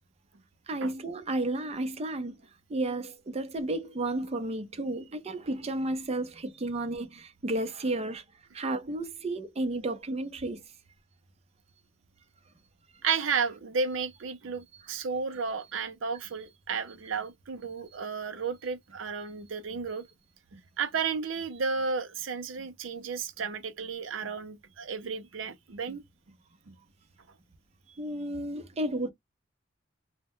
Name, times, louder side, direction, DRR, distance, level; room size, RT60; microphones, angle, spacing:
voice 1, 0.7-2.4 2.7-8.2 8.5-10.6 28.0-29.1, right 2 dB, 30° right, 0.5 m, -32 dB
voice 2, 13.0-20.1 20.5-26.0 26.7-26.8, right 5 dB, 75° right, 0.6 m, -33 dB
2.1 x 2.1 x 3.6 m
head